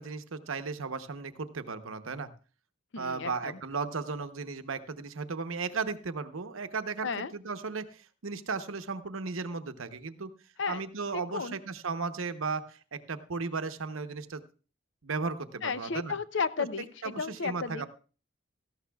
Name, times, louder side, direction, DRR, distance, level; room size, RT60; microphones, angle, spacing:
voice 1, 0.0-2.3 3.0-10.3 10.7-14.4 15.0-16.1 17.0-17.9, right 4 dB, 85° right, 10 dB, 0.9 m, -35 dB
voice 2, 2.9-3.6 7.0-7.3 10.6-10.8 11.1-11.6 15.6-17.9, left 5 dB, 60° left, 14 dB, 0.6 m, -33 dB
17.5 x 14.0 x 2.3 m, 0.36 s
head